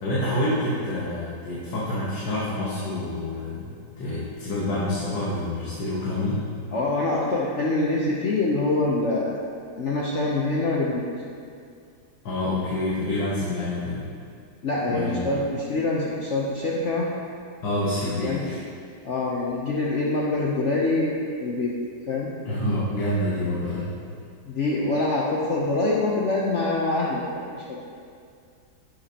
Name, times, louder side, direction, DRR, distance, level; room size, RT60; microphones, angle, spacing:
voice 1, 0.0-6.4 12.2-14.1 14.9-15.4 17.6-18.6 22.5-23.9, left 1 dB, 90° left, -8 dB, 2.0 m, -27 dB
voice 2, 6.7-9.4 9.8-11.0 14.6-17.1 18.2-18.4 19.0-21.1 21.4-21.7 22.1-22.3 24.4-27.2 27.5-27.8, left 2 dB, 55° left, -4 dB, 0.9 m, -25 dB
10.5 x 7.1 x 2.9 m, 2.3 s
omnidirectional pair, 2.0 m